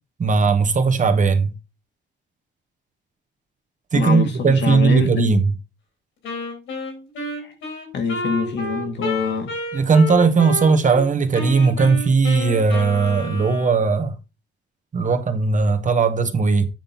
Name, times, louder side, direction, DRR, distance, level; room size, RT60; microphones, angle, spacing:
voice 1, 0.2-1.5 3.9-5.5 9.7-14.1 14.9-16.7, right 4 dB, 40° right, 1.3 m, -18 dB
voice 2, 3.9-5.3 7.4-7.5 7.9-9.5, left 6 dB, 65° left, 1.8 m, -25 dB
Wind instrument woodwind instrument, 6.2-11.0 11.3-14.0, left 1 dB, 85° left, 3.9 m, -30 dB
8.9 x 3.7 x 5.6 m
cardioid pair, 90°, 20 cm